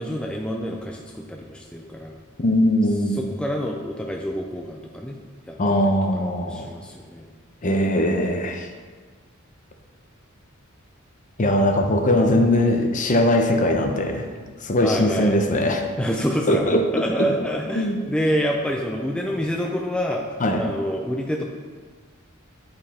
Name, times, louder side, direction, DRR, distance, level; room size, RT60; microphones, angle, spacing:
voice 1, 0.0-2.1 3.2-5.1 5.5-7.3 14.8-15.4 16.0-16.7 16.9-21.4, equal, 5° left, 0 dB, 0.4 m, -27 dB
voice 2, 2.4-3.2 5.6-6.7 7.6-8.7 11.4-14.3 14.6-15.8 16.5-16.9 17.2-17.3 17.7-18.0 20.4-20.7, left 1 dB, 40° left, 4 dB, 0.7 m, -20 dB
9.2 x 5.2 x 4.2 m, 1.5 s
head